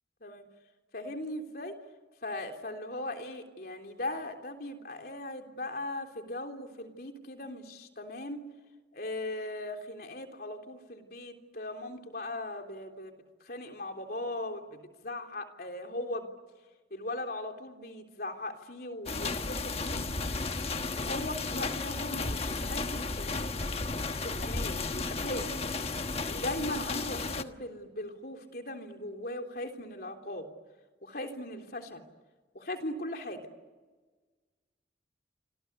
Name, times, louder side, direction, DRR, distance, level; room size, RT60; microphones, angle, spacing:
voice 1, 0.9-1.7 2.2-8.4 8.9-13.1 13.4-16.3 16.9-20.1 20.9-23.5 24.2-25.6 26.3-30.5 31.0-32.0 32.5-33.4, left 1 dB, 55° left, 4 dB, 3.4 m, -39 dB
sound 1, 19.1-27.4, left 3 dB, 35° left, 1.2 m, -33 dB
27.5 x 26.5 x 8.2 m, 1.3 s
head